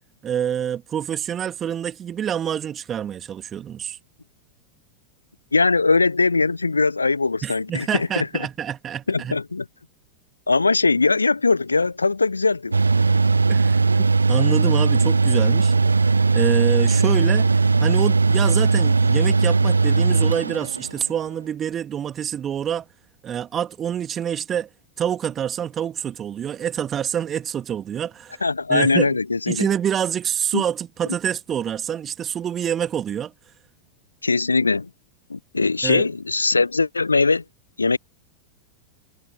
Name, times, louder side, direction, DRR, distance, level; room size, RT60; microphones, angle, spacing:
voice 1, 0.2-4.0 7.4-9.3 13.5-15.8 16.3-22.9 23.2-24.7 25.0-28.4 28.7-29.2 29.5-33.3 35.8-36.1, right 9 dB, 25° right, 2.3 m, -27 dB
voice 2, 5.5-8.3 9.1-9.7 10.5-12.7 28.4-29.7 30.5-30.6 34.2-34.9 35.3-37.4 37.8-38.0, left 3 dB, 80° left, 0.8 m, -20 dB
Mechanical fan, 12.7-21.1, right 4 dB, 80° right, 0.5 m, -18 dB
figure-of-eight pair, 90°, 0 cm